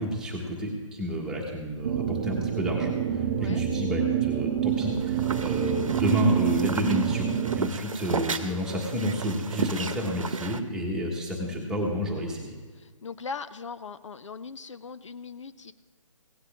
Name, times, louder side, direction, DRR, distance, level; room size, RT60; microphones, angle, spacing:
voice 1, 0.0-12.5, equal, 5° right, -2 dB, 1.4 m, -30 dB
sound 1, 1.8-7.7, right 10 dB, 25° right, 0.5 m, -27 dB
sound 2, 4.8-10.6, right 4 dB, 75° right, 1.0 m, -34 dB
voice 2, 12.8-15.7, left 5 dB, 60° left, 13 dB, 0.5 m, -39 dB
17.0 x 9.7 x 3.6 m, 1.4 s
figure-of-eight pair, 150°, 17 cm